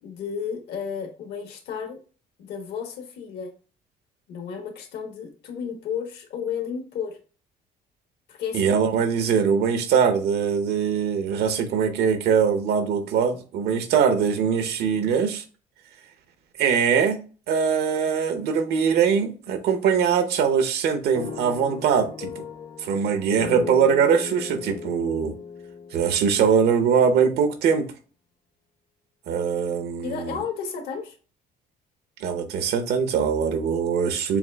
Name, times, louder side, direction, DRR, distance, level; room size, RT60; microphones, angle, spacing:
voice 1, 0.0-2.0 2.4-3.5 4.3-7.2 8.3-8.8 30.0-31.2, left 7 dB, 75° left, 1.2 m, -32 dB
voice 2, 8.5-15.4 16.6-17.2 17.5-22.4 22.8-25.3 25.9-27.9 29.3-30.4 32.2-34.4, right 7 dB, 75° right, 0.8 m, -22 dB
sound 1, 21.2-27.2, left 6 dB, 30° left, 0.6 m, -37 dB
7.0 x 2.4 x 2.3 m
cardioid pair, 110°, 17 cm